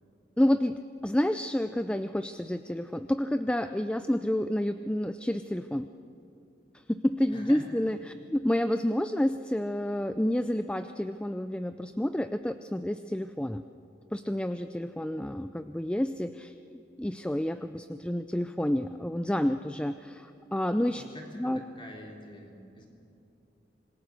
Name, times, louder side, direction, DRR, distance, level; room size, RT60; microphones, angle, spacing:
voice 1, 0.4-5.9 6.9-13.6 14.1-21.0 21.3-21.6, left 1 dB, 5° left, 10 dB, 0.4 m, -29 dB
voice 2, 7.3-7.9 20.8-22.9, equal, 30° left, 0 dB, 3.7 m, -46 dB
26.0 x 20.5 x 6.6 m, 2.8 s
head